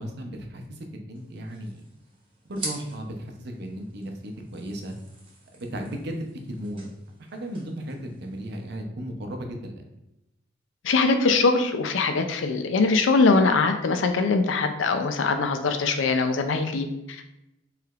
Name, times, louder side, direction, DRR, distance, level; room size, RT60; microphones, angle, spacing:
voice 1, 0.0-1.9 2.4-4.9 5.5-6.8 7.2-9.8, equal, 60° right, 3 dB, 0.6 m, -35 dB
sound 1, 1.1-8.8, right 2 dB, 25° right, 1.1 m, -44 dB
voice 2, 10.8-17.3, left 3 dB, 80° left, 6 dB, 0.4 m, -22 dB
4.7 x 3.2 x 2.4 m, 0.88 s
head